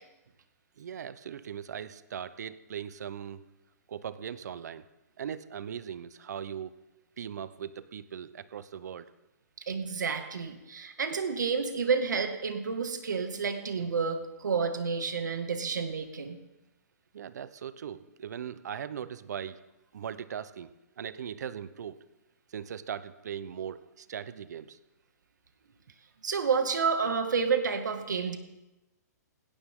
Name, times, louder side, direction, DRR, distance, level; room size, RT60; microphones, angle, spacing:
voice 1, 0.8-3.4 3.9-4.9 5.2-6.7 7.2-9.1 17.1-19.6 19.9-22.0 22.5-24.8, right 8 dB, 70° right, 15 dB, 1.0 m, -39 dB
voice 2, 9.7-16.4 26.2-28.4, right 5 dB, 85° right, 6 dB, 2.2 m, -30 dB
18.5 x 16.5 x 3.8 m, 0.98 s
hypercardioid pair, 150°, 10 cm